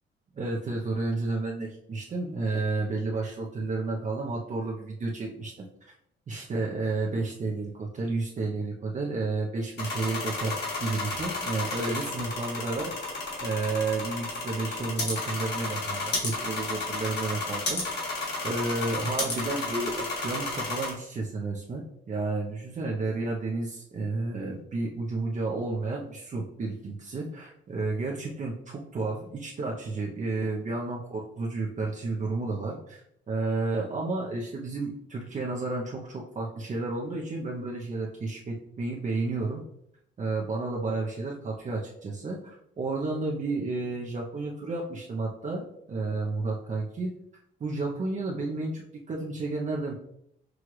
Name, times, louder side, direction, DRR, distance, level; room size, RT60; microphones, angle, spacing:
voice 1, 0.4-5.9 6.3-12.9 13.4-18.1 18.4-39.6 40.2-47.1 47.6-48.8 49.1-49.9, right 3 dB, 40° right, -2 dB, 0.7 m, -31 dB
sound 1, 9.8-20.9, left 2 dB, 60° left, 1.7 m, -32 dB
6.2 x 2.4 x 3.1 m, 0.74 s
cardioid pair, 90°, 20 cm